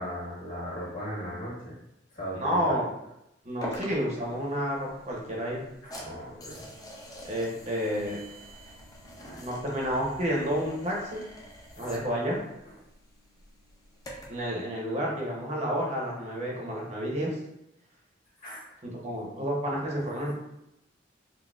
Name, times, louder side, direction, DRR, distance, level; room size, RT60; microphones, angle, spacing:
voice 1, 0.0-1.8 2.1-2.8 5.8-6.6 9.2-9.5 11.8-12.0 18.4-18.7, equal, 50° left, -7 dB, 1.4 m, -38 dB
voice 2, 2.4-2.9 3.4-5.7 7.2-8.2 9.4-11.2 11.8-12.4 14.3-17.4 18.8-20.3, equal, 35° right, -3 dB, 0.8 m, -30 dB
sound 1, 3.6-14.5, equal, 20° left, 0.5 m, -46 dB
3.9 x 2.1 x 2.4 m, 0.84 s
head